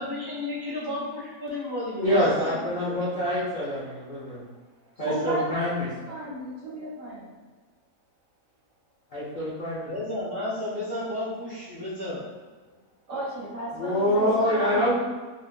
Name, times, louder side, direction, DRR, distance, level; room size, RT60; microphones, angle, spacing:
voice 1, 0.0-3.3 9.9-12.2, left 1 dB, 25° right, -8 dB, 0.5 m, -33 dB
voice 2, 2.0-4.4 5.0-5.9 9.1-9.9 13.7-15.0, equal, 70° left, -9 dB, 0.4 m, -25 dB
voice 3, 5.0-5.8 6.0-7.4 13.1-15.0, right 1 dB, 60° right, -7 dB, 0.8 m, -34 dB
3.5 x 2.6 x 2.2 m, 1.4 s
omnidirectional pair, 1.8 m